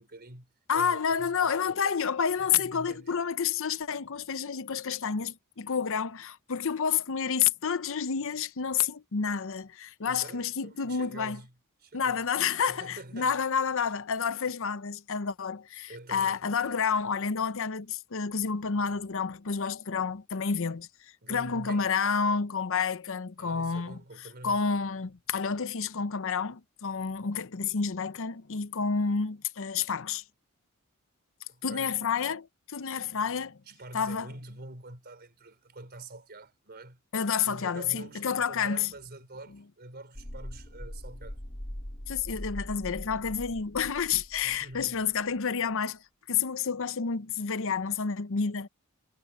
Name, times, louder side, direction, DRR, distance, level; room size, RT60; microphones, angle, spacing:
voice 1, 0.0-1.9 2.4-3.1 10.1-11.5 11.8-12.2 12.7-13.4 13.8-13.9 15.9-16.8 21.2-21.9 23.4-24.6 31.5-32.0 33.7-37.0 37.4-41.4 44.4-45.1, right 2 dB, 50° right, 4.4 m, -46 dB
voice 2, 0.7-11.4 11.9-24.0 24.4-30.2 31.6-33.6 33.9-34.3 37.1-38.9 42.1-48.7, left 6 dB, 65° left, 0.8 m, -29 dB
sound 1, 40.1-45.0 45.3-45.4, equal, 40° left, 3.0 m, -41 dB
head